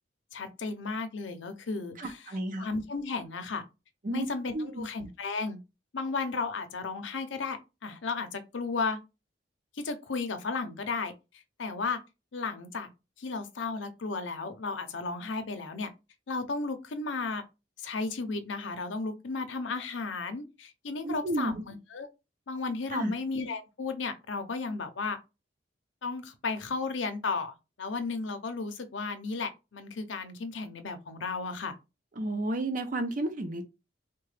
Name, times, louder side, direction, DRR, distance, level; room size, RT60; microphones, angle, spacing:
voice 1, 0.3-2.2 2.6-3.6 4.1-5.6 5.9-9.0 9.8-11.1 11.6-12.0 12.3-12.9 13.2-15.9 16.3-17.4 17.8-22.1 22.5-25.2 26.0-31.7, left 4 dB, 90° left, 0.6 m, -34 dB
voice 2, 2.0-2.7 4.0-4.3 4.5-4.9 21.0-21.5 22.9-23.1 32.2-33.7, right 1 dB, 45° right, 0.6 m, -32 dB
3.6 x 2.2 x 3.2 m
head